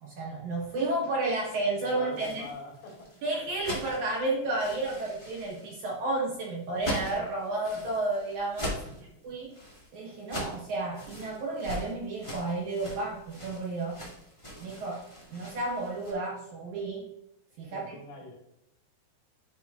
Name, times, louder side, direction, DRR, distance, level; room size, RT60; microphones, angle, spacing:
voice 1, 0.0-2.5 3.2-8.8 9.2-9.5 9.9-14.0 14.6-15.1 15.3-17.1 17.6-18.0, right 2 dB, 65° right, -3 dB, 2.1 m, -32 dB
voice 2, 1.8-3.1 8.8-9.2 17.7-18.4, left 3 dB, 85° left, -2 dB, 4.4 m, -45 dB
sound 1, 1.9-16.1, equal, 20° left, 0.9 m, -41 dB
11.0 x 5.3 x 2.3 m, 0.81 s
omnidirectional pair, 4.8 m